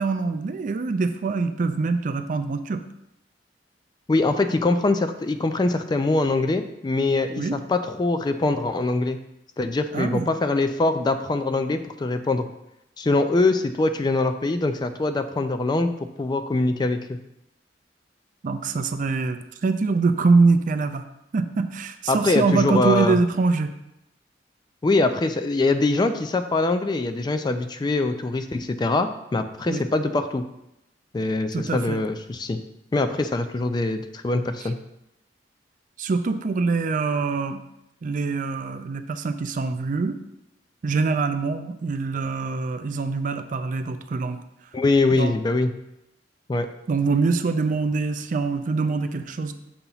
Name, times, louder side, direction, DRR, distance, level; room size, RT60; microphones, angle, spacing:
voice 1, 0.0-2.8 7.4-7.6 9.9-10.3 18.4-21.0 21.3-23.7 29.7-29.8 31.5-32.0 36.0-37.6 38.0-40.2 40.8-44.4 45.2-45.4 46.9-49.5, right 4 dB, 45° right, 9 dB, 0.4 m, -24 dB
voice 2, 4.1-9.2 9.6-12.5 13.0-15.9 16.2-17.2 22.1-23.2 24.8-30.4 31.1-32.6 32.9-34.8 44.7-45.7 46.5-46.7, left 2 dB, 25° left, 8 dB, 0.3 m, -23 dB
6.9 x 2.9 x 5.5 m, 0.85 s
head